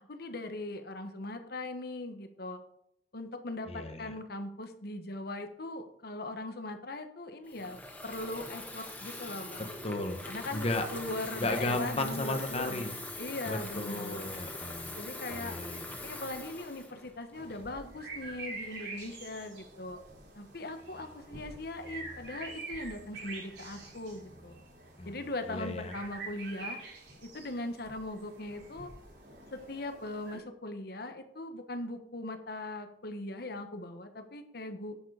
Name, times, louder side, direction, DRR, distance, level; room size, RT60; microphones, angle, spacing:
voice 1, 0.1-2.6 3.1-9.7 10.3-12.9 13.2-14.3 15.0-15.6 16.0-20.0 20.3-24.6 25.0-26.8 27.2-28.9 29.5-34.9, left 2 dB, 60° left, 7 dB, 1.3 m, -40 dB
voice 2, 3.7-4.1 9.8-10.2 10.5-10.8 11.4-12.9 13.5-15.0 15.3-15.9 25.0-25.2 25.5-25.9, left 2 dB, 35° left, 6 dB, 1.2 m, -34 dB
Water tap faucet / Fill (with liquid), 7.5-17.7, left 2 dB, 10° left, 1.7 m, -43 dB
sound 1, 17.3-30.4, right 3 dB, 80° right, 4.4 m, -46 dB
10.0 x 7.4 x 4.9 m, 0.75 s
head